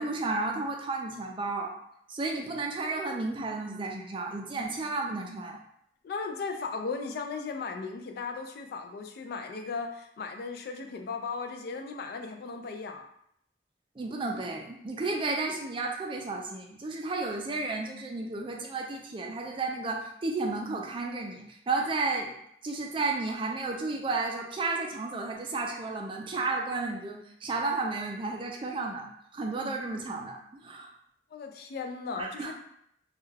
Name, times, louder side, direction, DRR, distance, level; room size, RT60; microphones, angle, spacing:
voice 1, 0.0-1.7 2.1-5.6 14.0-22.3 22.6-29.1 29.3-30.9 32.2-32.5, right 3 dB, 30° right, 1 dB, 0.4 m, -32 dB
voice 2, 6.0-13.1 31.3-32.5, left 4 dB, 60° left, 4 dB, 0.3 m, -36 dB
2.2 x 2.2 x 3.2 m, 0.72 s
head